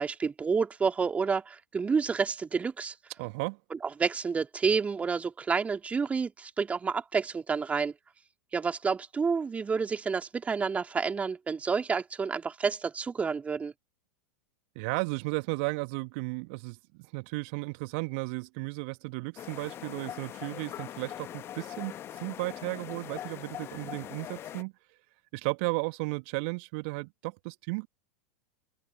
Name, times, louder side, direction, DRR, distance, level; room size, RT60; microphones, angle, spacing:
voice 1, 0.0-2.9 4.0-7.9 8.5-13.7, right 5 dB, 15° right, 2.9 m, -29 dB
voice 2, 3.2-3.6 14.7-24.7 25.3-27.9, right 31 dB, 50° right, 1.7 m, -34 dB
sound 1, 19.4-24.6, left 11 dB, 30° left, 1.5 m, -42 dB
open air
figure-of-eight pair, 90°, 8 cm